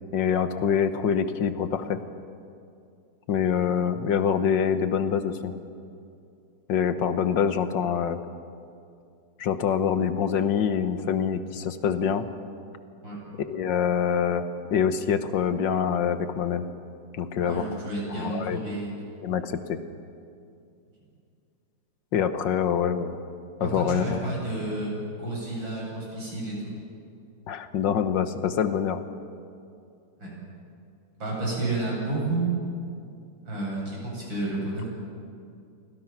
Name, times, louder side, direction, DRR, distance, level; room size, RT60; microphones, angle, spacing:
voice 1, 0.1-2.0 3.3-5.5 6.7-8.2 9.4-12.3 13.4-16.7 17.1-17.7 18.1-18.6 19.2-19.8 22.1-23.2 23.6-24.2 27.5-29.0, left 7 dB, 70° left, 10 dB, 1.8 m, -25 dB
voice 2, 17.4-18.9 23.6-24.9 25.2-26.7 30.2-30.3 31.2-32.5 33.5-34.9, right 2 dB, 85° right, -4 dB, 8.7 m, -31 dB
30.0 x 24.5 x 6.0 m, 2.5 s
omnidirectional pair, 2.0 m